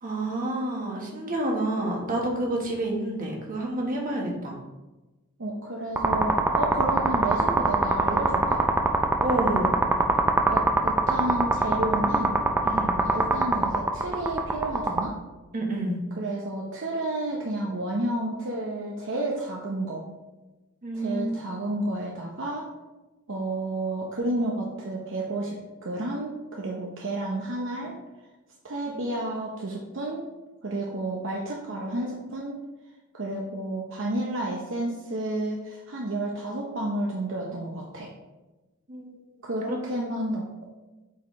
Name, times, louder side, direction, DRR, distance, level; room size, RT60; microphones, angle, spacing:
voice 1, 0.0-4.6 9.2-9.8 12.6-13.0 15.5-16.0 20.8-21.3 28.9-29.0 38.9-39.1 39.7-39.8, right 1 dB, 40° right, -1 dB, 1.3 m, -29 dB
voice 2, 5.4-8.6 10.5-12.4 13.0-15.1 16.2-20.0 20.9-22.7 23.3-25.5 25.8-27.9 28.6-30.2 30.6-32.5 33.1-38.1 39.4-40.7, right 1 dB, 60° right, -1 dB, 0.8 m, -31 dB
sound 1, 6.0-15.0, right 2 dB, 10° right, 0.4 m, -22 dB
8.0 x 4.2 x 3.2 m, 1.1 s
head